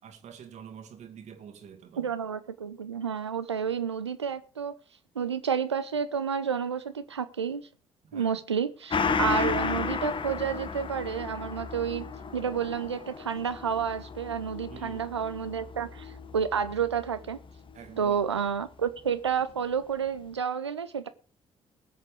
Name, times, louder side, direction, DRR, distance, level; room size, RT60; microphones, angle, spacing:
voice 1, 0.0-2.1 8.0-8.3 14.7-15.1 17.7-18.2, right 7 dB, 55° right, 2.0 m, -46 dB
voice 2, 2.0-4.7 5.1-7.6 8.1-12.0 12.3-17.4 18.0-21.1, right 7 dB, 90° right, 0.6 m, -30 dB
Gong, 8.9-17.9 18.2-18.3, left 5 dB, 35° left, 1.1 m, -34 dB
19.5 x 6.6 x 5.1 m
figure-of-eight pair, 45°, 14 cm